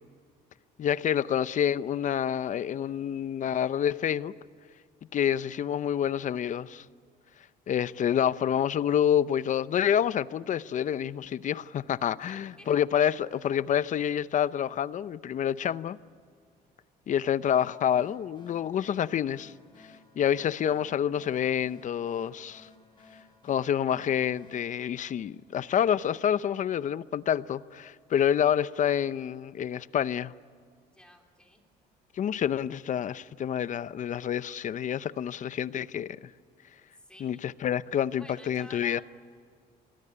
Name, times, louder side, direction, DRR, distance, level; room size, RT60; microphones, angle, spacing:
voice 1, 0.8-4.3 5.1-6.8 7.7-16.0 17.1-19.5 20.2-22.7 23.4-30.3 32.2-36.3 37.2-39.0, left 9 dB, 45° left, 0.7 m, -28 dB
voice 2, 12.2-12.8 30.9-31.6 37.0-37.4 38.1-39.0, left 1 dB, 5° left, 3.2 m, -51 dB
sound 1, 17.4-25.8, left 3 dB, 25° left, 7.8 m, -57 dB
27.0 x 20.5 x 9.7 m
cardioid pair, 110°, 17 cm